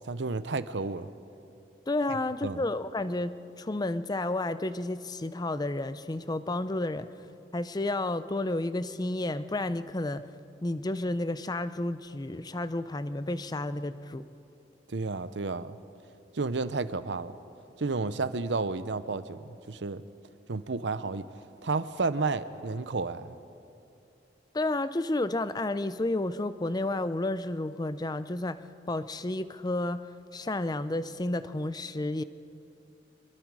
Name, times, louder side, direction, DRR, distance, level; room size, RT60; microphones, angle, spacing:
voice 1, 0.1-1.1 2.4-2.6 14.9-15.8 16.3-17.3 17.8-20.0 20.5-21.3 21.6-23.4, right 3 dB, 80° right, 14 dB, 0.8 m, -31 dB
voice 2, 1.9-7.1 7.5-10.2 10.6-14.3 24.5-28.6 28.9-30.1 30.3-32.2, left 2 dB, 25° left, 13 dB, 0.6 m, -31 dB
25.5 x 22.5 x 4.9 m, 2.7 s
head